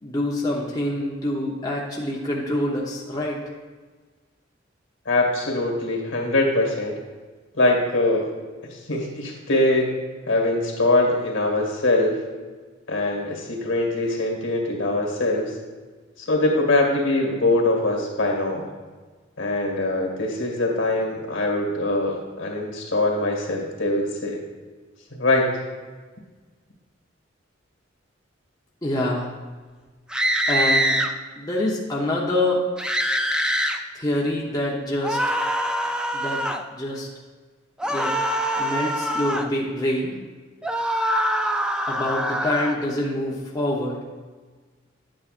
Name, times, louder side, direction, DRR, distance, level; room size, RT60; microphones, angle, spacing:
voice 1, 0.0-3.4 28.8-29.3 30.5-31.0 31.4-32.6 33.9-35.2 36.1-36.4 36.7-37.1 37.8-38.1 38.6-40.2 41.9-44.0, left 1 dB, 20° left, -4 dB, 0.9 m, -26 dB
voice 2, 5.1-6.9 7.5-8.3 8.6-9.9 10.3-12.2 12.9-15.5 16.2-18.7 19.4-24.4 25.1-25.5, left 2 dB, 70° left, 0 dB, 2.0 m, -22 dB
sound 1, 30.1-31.1 32.8-33.8 35.0-36.6 37.8-39.5 40.6-42.8, equal, 5° right, 0.4 m, -24 dB
10.5 x 8.6 x 2.5 m, 1.4 s
head